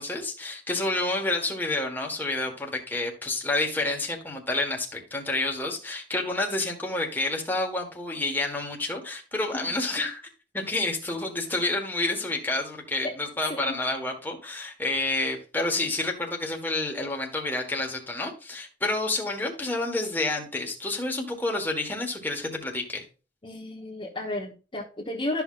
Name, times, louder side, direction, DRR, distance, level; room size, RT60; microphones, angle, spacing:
voice 1, 0.0-10.2 10.5-23.0, left 2 dB, 10° left, 1.5 m, -29 dB
voice 2, 23.4-25.4, left 1 dB, 30° left, 1.2 m, -32 dB
12.5 x 5.7 x 2.5 m
head